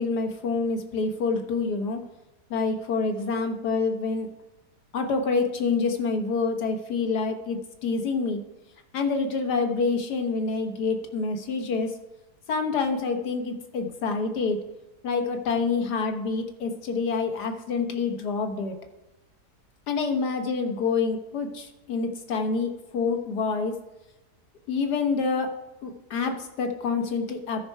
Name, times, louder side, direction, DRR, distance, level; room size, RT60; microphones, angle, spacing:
voice 1, 0.0-2.0 2.5-4.3 4.9-8.4 8.9-11.9 12.5-14.6 15.0-18.8 19.9-23.7 24.7-25.5 25.8-27.6, left 4 dB, 80° left, 5 dB, 1.7 m, -27 dB
13.0 x 5.5 x 4.6 m, 1.0 s
omnidirectional pair, 1.7 m